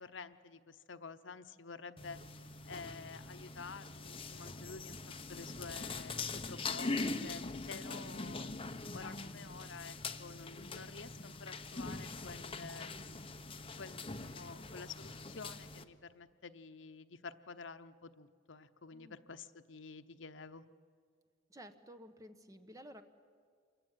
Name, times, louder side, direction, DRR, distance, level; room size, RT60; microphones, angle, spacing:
voice 1, 0.0-5.0 5.3-13.2 13.8-20.6, left 4 dB, 80° left, 11 dB, 0.9 m, -50 dB
sound 1, 2.0-15.8, left 3 dB, 30° left, 1.1 m, -43 dB
voice 2, 21.5-23.0, equal, 20° right, 8 dB, 1.3 m, -53 dB
27.5 x 23.0 x 9.2 m, 2.1 s
head